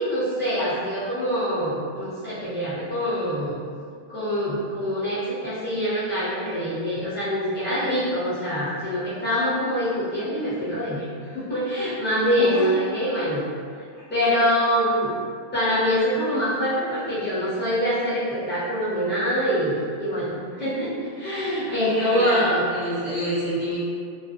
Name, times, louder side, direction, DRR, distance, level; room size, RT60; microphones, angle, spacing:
voice 1, 0.0-3.6 4.1-13.4 14.1-15.1 15.5-22.6, equal, 10° left, -13 dB, 0.8 m, -24 dB
voice 2, 12.3-12.7 13.9-14.0 21.7-23.8, equal, 50° left, -13 dB, 0.7 m, -29 dB
2.4 x 2.1 x 2.5 m, 2.2 s
omnidirectional pair, 1.2 m